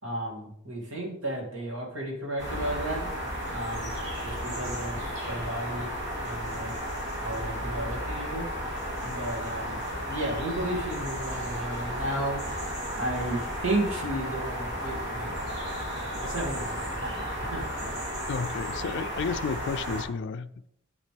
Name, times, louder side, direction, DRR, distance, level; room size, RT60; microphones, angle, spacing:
voice 1, 0.0-3.0 3.5-3.9 4.2-5.0 5.3-5.9 6.2-6.7 7.2-8.5 9.0-9.8 10.1-15.5 16.1-17.7, right 1 dB, 75° right, 2.6 m, -33 dB
sound 1, 2.4-20.0, equal, 60° right, 2.9 m, -33 dB
voice 2, 18.3-20.7, left 5 dB, 60° left, 0.4 m, -32 dB
8.2 x 6.9 x 3.5 m
head